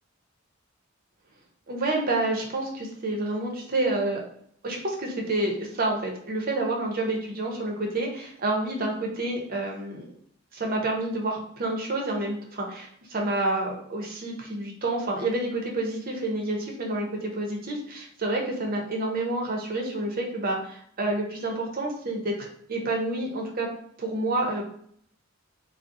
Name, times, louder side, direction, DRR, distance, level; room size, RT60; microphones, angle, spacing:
voice 1, 1.7-4.2 4.6-10.1 10.5-23.7 24.0-24.7, right 2 dB, 45° right, 0 dB, 0.7 m, -29 dB
3.6 x 2.0 x 2.6 m, 0.65 s
head